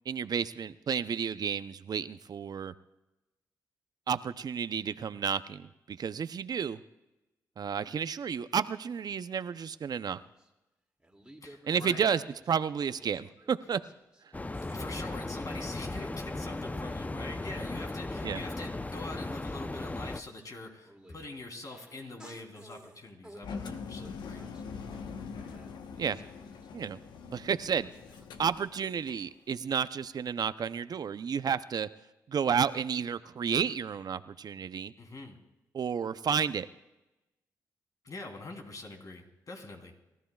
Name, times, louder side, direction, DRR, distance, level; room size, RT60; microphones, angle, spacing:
voice 1, 0.1-2.7 4.1-6.8 7.6-10.2 11.7-13.8 18.2-18.4 26.0-26.2 26.7-27.0 27.3-27.9 28.4-31.9 32.3-34.9 35.7-36.7, right 7 dB, 60° right, 13 dB, 0.6 m, -31 dB
sound 1, 9.5-10.5 11.0-14.3 14.5-15.1 15.7-17.1 17.4-23.5 24.0-27.3 27.6-28.3, right 1 dB, 10° right, 2.5 m, -56 dB
voice 2, 11.4-12.0 14.7-24.4 35.0-35.3 38.0-39.9, left 2 dB, 50° left, 2 dB, 3.3 m, -44 dB
sound 2, 14.3-20.2, left 2 dB, 20° left, 0.7 m, -37 dB
Engine, 23.4-29.3, left 5 dB, 85° left, 1.0 m, -43 dB
28.0 x 14.0 x 2.4 m, 0.99 s
supercardioid pair, 50°, 8 cm